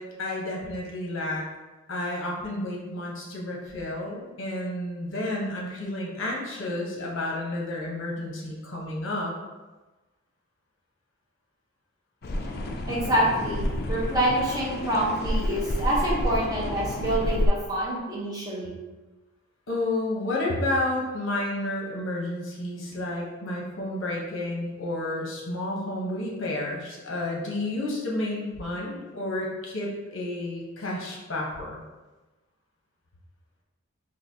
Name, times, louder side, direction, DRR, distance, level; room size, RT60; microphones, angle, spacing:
voice 1, 0.0-1.5 1.9-9.3 19.7-31.8, left 1 dB, 60° left, -3 dB, 0.8 m, -31 dB
sound 1, 12.2-17.5, left 1 dB, 45° left, 0.3 m, -30 dB
voice 2, 12.9-18.8, right 1 dB, 20° right, -6 dB, 0.8 m, -26 dB
3.9 x 2.6 x 2.7 m, 1.2 s
head